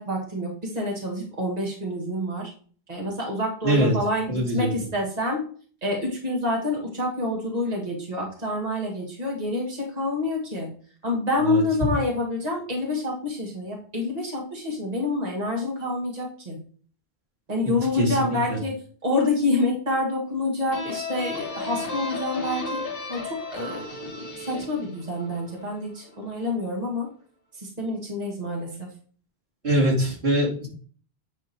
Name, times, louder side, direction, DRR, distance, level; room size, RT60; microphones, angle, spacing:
voice 1, 0.0-2.5 2.9-5.4 5.8-10.7 11.0-16.6 17.5-18.7 19.0-22.8 23.1-27.1 27.6-28.9, left 2 dB, 40° right, -1 dB, 2.0 m, -27 dB
voice 2, 3.6-3.9 4.3-4.7 11.4-11.6 17.6-18.6 29.6-30.7, equal, 90° right, -4 dB, 3.0 m, -23 dB
sound 1, 20.7-26.1, left 3 dB, 65° left, 2.0 m, -34 dB
9.7 x 3.6 x 4.4 m, 0.44 s
omnidirectional pair, 1.1 m